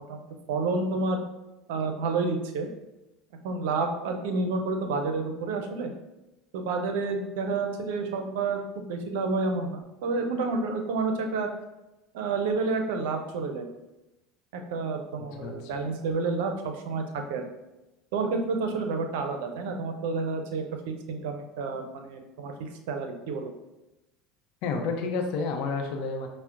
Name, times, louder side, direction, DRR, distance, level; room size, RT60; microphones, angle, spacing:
voice 1, 0.1-1.2 1.7-2.7 3.4-5.9 6.5-11.5 12.1-13.7 14.5-17.4 18.1-23.5, right 3 dB, 75° right, 5 dB, 0.5 m, -30 dB
voice 2, 24.6-26.3, left 4 dB, 65° left, 3 dB, 0.6 m, -29 dB
5.5 x 2.1 x 2.5 m, 0.99 s
hypercardioid pair, 90°, 0 cm